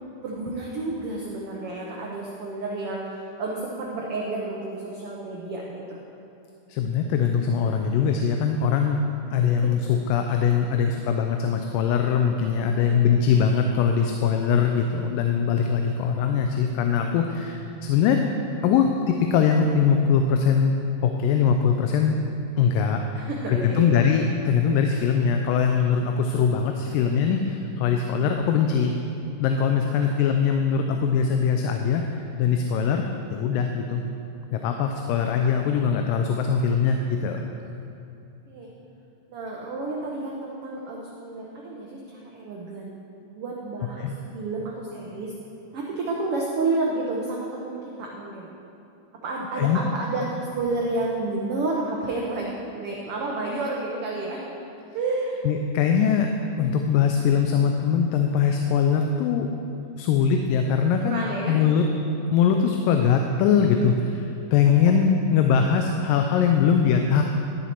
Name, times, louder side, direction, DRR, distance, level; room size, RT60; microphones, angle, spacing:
voice 1, 0.2-6.0 9.6-9.7 10.8-11.0 12.7-13.2 23.1-24.0 30.0-30.1 38.5-38.7 39.3-43.0 43.3-45.3 45.7-48.5 49.2-54.4 54.9-55.4 61.0-61.6, right 2 dB, 90° right, -2 dB, 1.2 m, -30 dB
voice 2, 6.7-9.0 9.3-18.3 18.6-22.2 22.6-28.9 29.4-34.0 34.5-37.5 44.0-44.1 49.6-49.8 55.4-56.3 56.6-59.5 60.0-61.8 62.3-67.2, left 6 dB, 90° left, 4 dB, 2.2 m, -22 dB
12.5 x 7.0 x 4.5 m, 2.8 s
omnidirectional pair, 3.8 m